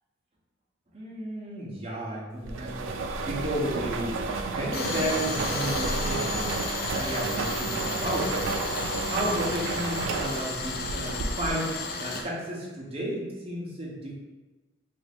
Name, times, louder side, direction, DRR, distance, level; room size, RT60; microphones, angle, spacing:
voice 1, 0.9-4.2 4.5-6.6 6.9-8.4 9.1-11.7 12.0-14.1, right 1 dB, 30° right, -4 dB, 0.7 m, -33 dB
sound 1, 2.5-11.8, right 3 dB, 80° right, 0.3 m, -32 dB
Tools, 4.7-12.2, left 3 dB, 50° left, 0.4 m, -33 dB
3.3 x 2.5 x 3.4 m, 1.2 s
head